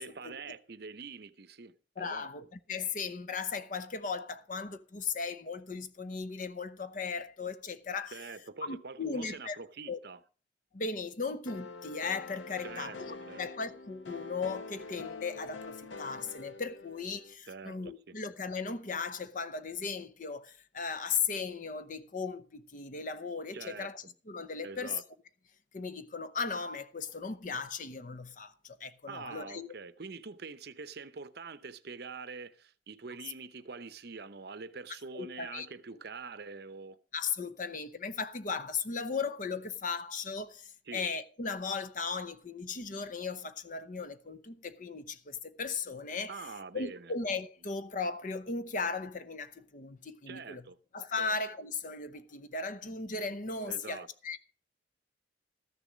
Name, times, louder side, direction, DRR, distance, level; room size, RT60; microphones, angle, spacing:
voice 1, 0.0-2.3 8.1-10.2 12.6-13.4 17.5-18.2 23.5-24.1 24.6-25.0 29.1-37.0 40.9-41.1 46.3-47.1 50.3-50.8 51.2-51.4 53.6-54.1, right 4 dB, 55° right, 0.7 m, -45 dB
voice 2, 2.0-8.2 8.6-9.6 9.9-10.0 10.7-25.0 25.7-29.7 35.1-35.7 37.1-46.5 46.7-50.6 50.9-54.5, left 5 dB, 45° left, 0.7 m, -37 dB
sound 1, 11.5-17.3, left 3 dB, 80° left, 0.9 m, -45 dB
13.5 x 7.0 x 6.1 m
head